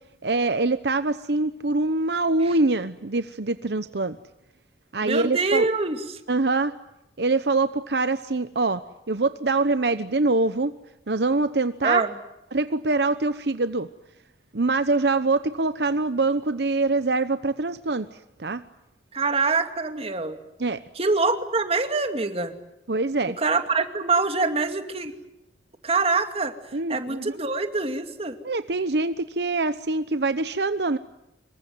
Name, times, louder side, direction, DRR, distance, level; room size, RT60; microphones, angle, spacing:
voice 1, 0.2-4.2 4.9-5.7 6.3-6.7 7.2-8.8 9.1-10.7 11.1-12.0 12.5-13.9 14.5-18.1 18.4-18.6 20.6-20.8 22.9-23.4 26.7-27.3 28.4-31.0, right 3 dB, 70° right, 12 dB, 0.9 m, -24 dB
voice 2, 5.0-6.0 11.8-12.2 19.1-20.4 21.0-22.5 23.4-25.1 25.8-26.5 26.9-28.4, right 3 dB, 35° right, 7 dB, 2.5 m, -24 dB
26.5 x 23.5 x 9.3 m, 0.88 s
head